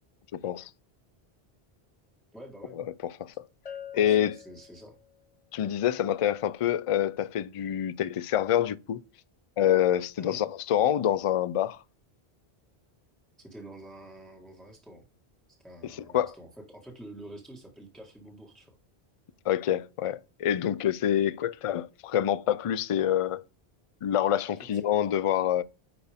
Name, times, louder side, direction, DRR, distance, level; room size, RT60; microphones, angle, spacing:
voice 1, 2.3-2.8 3.9-5.0 10.2-10.4 13.4-15.0 15.5-18.7 24.5-24.9, right 1 dB, ahead, 1.6 m, -48 dB
Bell, 3.7-5.3, left 8 dB, 40° left, 0.8 m, -45 dB
voice 2, 3.9-4.3 5.5-9.0 9.6-11.8 16.1-16.3 19.5-23.4 24.0-25.6, left 10 dB, 55° left, 0.3 m, -26 dB
9.8 x 4.4 x 3.5 m
omnidirectional pair, 1.1 m